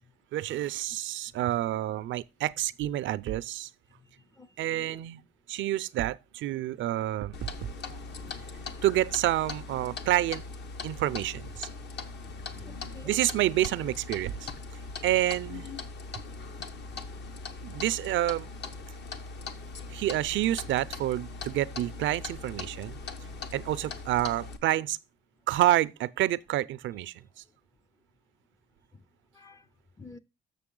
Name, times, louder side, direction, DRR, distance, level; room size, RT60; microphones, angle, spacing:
voice 1, 0.3-3.7 4.6-8.0 8.8-10.4 10.8-11.7 13.0-14.5 15.0-15.6 17.6-18.5 19.9-23.0 23.5-25.0 25.5-27.2, right 14 dB, 75° right, 0.5 m, -28 dB
voice 2, 4.4-5.0 12.5-13.2 15.5-15.9 28.9-29.0 29.3-29.7 30.0-30.2, left 6 dB, 15° left, 0.4 m, -47 dB
Clock, 7.3-24.6, left 4 dB, 60° left, 1.0 m, -40 dB
6.8 x 6.8 x 3.7 m
cardioid pair, 90°, 20 cm